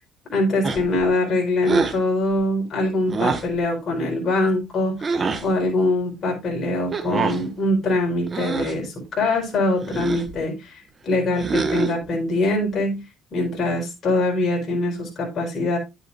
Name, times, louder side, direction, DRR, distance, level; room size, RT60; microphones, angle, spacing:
voice 1, 0.3-13.0 13.3-15.8, left 2 dB, 40° left, -1 dB, 4.6 m, -23 dB
sound 1, 0.6-1.1 1.6-2.0 3.1-3.6 5.0-5.5 6.9-7.5 8.3-8.8 9.8-10.3 11.4-12.1, right 4 dB, 30° right, 1.3 m, -25 dB
10.5 x 8.1 x 2.5 m, 0.23 s
cardioid pair, 110°, 0 cm